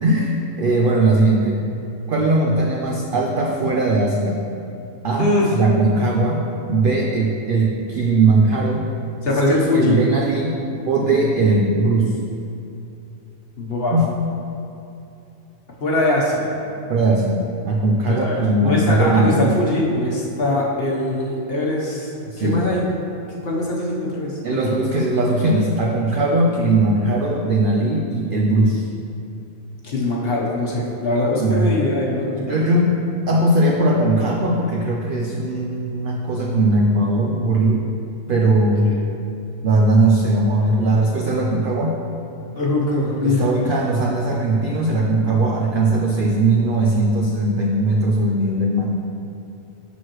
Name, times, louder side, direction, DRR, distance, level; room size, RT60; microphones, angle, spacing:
voice 1, 0.0-1.6 2.1-4.4 5.0-6.4 6.7-8.9 9.5-10.6 10.9-12.2 13.9-14.1 16.9-19.6 22.3-22.7 24.4-28.9 31.4-31.7 32.4-32.9 33.3-38.0 38.3-38.9 39.6-42.0 43.2-49.0, right 2 dB, 70° right, 0 dB, 0.5 m, -19 dB
voice 2, 5.2-5.5 9.2-10.0 11.1-11.2 13.6-13.9 15.8-16.5 18.1-22.1 22.4-22.8 23.4-24.8 29.8-32.6 38.8-39.0 42.5-43.5, left 1 dB, 45° left, -4 dB, 1.1 m, -22 dB
7.2 x 6.2 x 3.0 m, 2.7 s
omnidirectional pair, 1.5 m